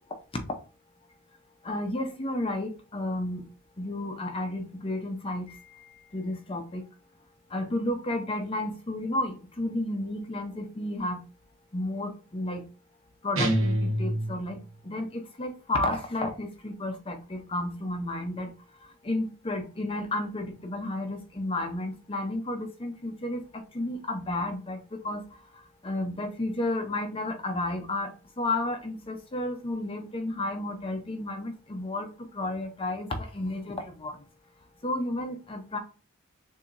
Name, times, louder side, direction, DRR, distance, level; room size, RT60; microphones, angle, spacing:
voice 1, 1.6-3.5 3.8-5.6 6.1-6.8 7.5-11.2 11.7-12.7 13.2-14.6 14.8-18.5 19.0-25.2 25.8-28.1 28.4-34.2 34.8-35.8, left 1 dB, 25° left, 5 dB, 0.6 m, -32 dB
sound 1, 13.4-14.7, right 1 dB, 60° right, 1.0 m, -27 dB
6.7 x 2.8 x 2.5 m, 0.35 s
head